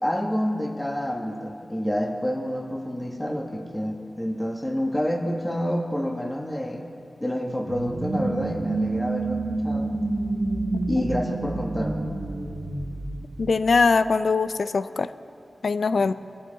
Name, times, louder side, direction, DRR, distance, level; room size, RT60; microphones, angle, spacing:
voice 1, 0.0-6.8 7.2-10.0 10.9-12.1 16.0-16.1, equal, 10° left, 1 dB, 1.3 m, -28 dB
sound 1, 7.7-14.1, right 2 dB, 65° right, 1.0 m, -29 dB
voice 2, 10.7-11.0 13.4-15.1 15.6-16.1, left 4 dB, 75° left, 13 dB, 0.4 m, -22 dB
22.0 x 8.4 x 4.0 m, 2.4 s
cardioid pair, 60°, 0 cm